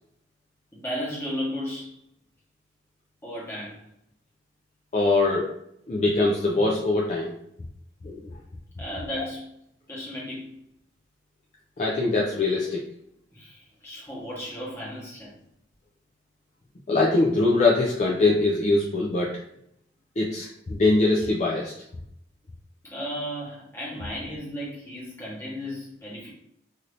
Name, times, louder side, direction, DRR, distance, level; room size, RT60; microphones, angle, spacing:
voice 1, 0.7-2.0 3.2-3.8 8.8-9.5 9.9-10.5 13.3-15.3 22.8-26.3, equal, 15° left, -7 dB, 1.1 m, -34 dB
voice 2, 4.9-5.6 5.9-7.3 8.0-8.3 9.2-9.3 11.8-12.8 16.9-19.4 20.2-21.7, left 2 dB, 35° left, -3 dB, 0.4 m, -22 dB
2.7 x 2.6 x 3.2 m, 0.75 s
head